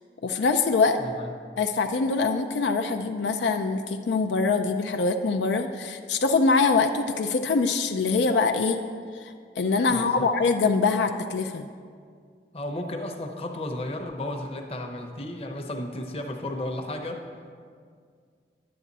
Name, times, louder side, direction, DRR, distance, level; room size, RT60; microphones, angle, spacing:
voice 1, 0.2-1.0 1.6-8.8 9.1-11.7, left 4 dB, 80° left, 6 dB, 0.4 m, -24 dB
voice 2, 9.9-10.3 12.5-17.3, left 1 dB, 35° left, 3 dB, 0.8 m, -33 dB
11.0 x 8.6 x 4.0 m, 2.1 s
head